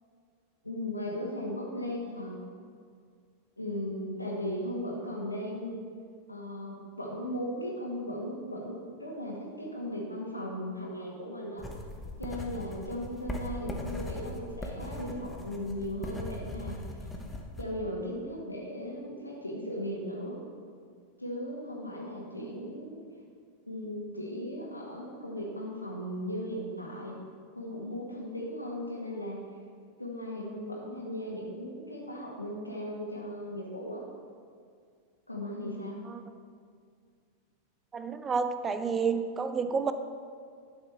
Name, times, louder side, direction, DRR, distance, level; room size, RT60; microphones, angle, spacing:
voice 1, 0.6-2.5 3.6-5.9 6.3-11.7 12.2-16.8 17.6-20.4 21.2-23.0 23.7-27.2 27.6-29.4 30.0-34.1 35.3-36.1, equal, 85° left, -2 dB, 1.9 m, -37 dB
sound 1, 11.6-17.6, left 1 dB, 10° left, 1.1 m, -39 dB
voice 2, 37.9-39.9, right 5 dB, 20° right, 9 dB, 0.5 m, -30 dB
11.5 x 6.6 x 4.7 m, 2.1 s
figure-of-eight pair, 90°, 0 cm